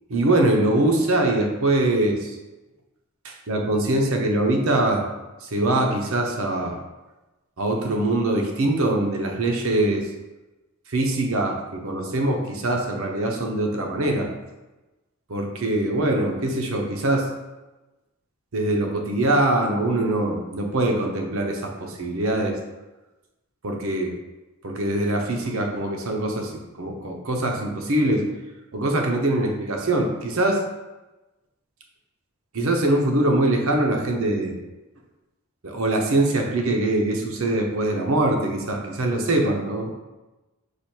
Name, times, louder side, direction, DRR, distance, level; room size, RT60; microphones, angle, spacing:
voice 1, 0.1-2.4 3.2-5.1 5.4-6.8 7.6-10.1 10.9-14.3 15.3-17.3 18.5-22.6 23.6-24.2 24.6-28.3 28.7-30.6 32.5-34.5 35.6-39.9, right 1 dB, 65° right, 2 dB, 0.7 m, -23 dB
4.8 x 2.5 x 4.4 m, 1.1 s
head